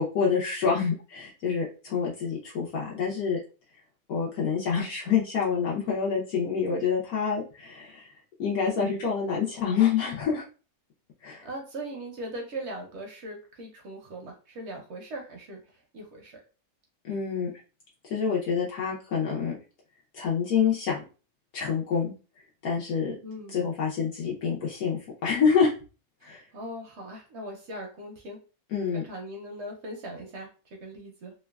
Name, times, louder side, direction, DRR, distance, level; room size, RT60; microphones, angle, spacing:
voice 1, 0.0-3.4 4.1-8.1 8.4-10.4 11.2-11.4 17.0-17.5 18.1-19.5 20.1-21.0 21.5-22.1 22.6-23.1 23.5-25.7 26.2-26.4 28.7-29.0, left 6 dB, 75° left, -5 dB, 1.2 m, -27 dB
voice 2, 11.4-15.6 15.9-16.4 23.2-23.6 26.2-28.4 28.9-30.5 30.8-31.3, right 1 dB, 60° right, 1 dB, 0.7 m, -39 dB
3.0 x 2.2 x 2.3 m, 0.35 s
omnidirectional pair, 1.6 m